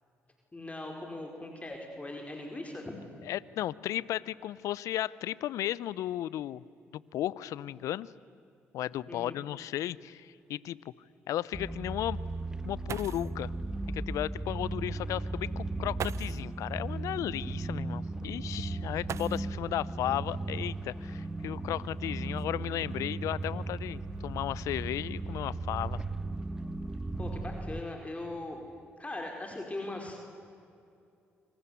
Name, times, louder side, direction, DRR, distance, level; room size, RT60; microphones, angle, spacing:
voice 1, 0.5-2.9 9.1-9.4 27.1-28.6 29.0-30.2, left 2 dB, 25° left, 2 dB, 5.0 m, -40 dB
voice 2, 3.3-6.6 7.1-8.1 8.7-10.9 11.3-12.2 12.6-13.5 13.9-26.0, left 13 dB, 70° left, 21 dB, 0.7 m, -35 dB
sound 1, 11.5-27.8, right 2 dB, 10° right, 1.4 m, -36 dB
sound 2, 12.5-12.6 12.9-13.4 14.7-14.8 15.9-16.5 19.0-19.8 21.1-21.2 22.0-23.4 24.1-24.5 24.8-25.2, right 9 dB, 60° right, 0.6 m, -42 dB
26.5 x 26.0 x 8.4 m, 2.5 s
hypercardioid pair, 45°, 6 cm